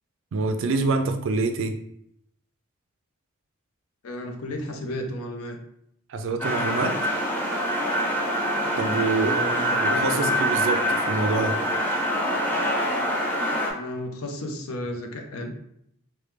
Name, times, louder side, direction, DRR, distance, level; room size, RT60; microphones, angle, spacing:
voice 1, 0.3-1.8 6.1-7.0 8.8-9.4 9.8-11.6, right 3 dB, 60° right, 7 dB, 0.3 m, -26 dB
voice 2, 4.0-5.6 9.2-10.3 13.7-15.5, left 1 dB, 80° left, 3 dB, 0.6 m, -33 dB
sound 1, 6.4-13.7, equal, 10° left, 0.4 m, -25 dB
3.1 x 2.2 x 3.2 m, 0.73 s
head